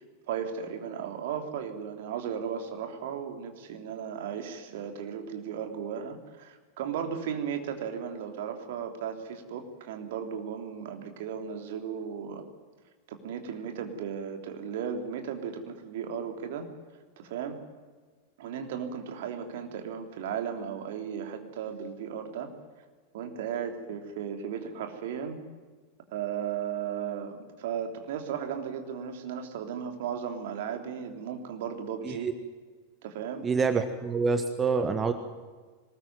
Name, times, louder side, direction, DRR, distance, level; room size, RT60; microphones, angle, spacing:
voice 1, 0.0-12.4 13.1-16.7 17.2-17.6 18.4-22.5 23.1-25.4 26.1-32.3 33.0-33.5, right 7 dB, 55° right, 5 dB, 3.3 m, -35 dB
voice 2, 33.4-35.1, right 4 dB, 20° right, 8 dB, 1.5 m, -26 dB
22.5 x 20.5 x 9.3 m, 1.4 s
figure-of-eight pair, 90°, 0 cm